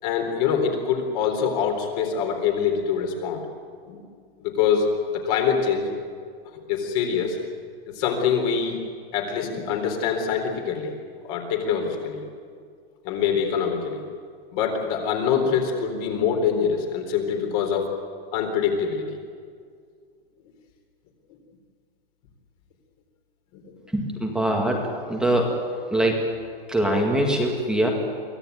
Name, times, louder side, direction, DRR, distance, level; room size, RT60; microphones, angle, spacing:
voice 1, 0.0-3.4 3.8-4.0 4.4-5.9 6.5-7.4 7.9-8.8 9.1-10.9 11.2-12.2 13.0-14.0 14.5-17.9 18.3-19.2 23.5-23.8, left 7 dB, 40° left, 3 dB, 4.0 m, -24 dB
voice 2, 23.9-24.8 25.1-25.5 25.9-26.2 26.7-27.9, right 1 dB, 5° right, 1 dB, 1.9 m, -22 dB
24.0 x 17.0 x 9.4 m, 2.1 s
hypercardioid pair, 160°, 30 cm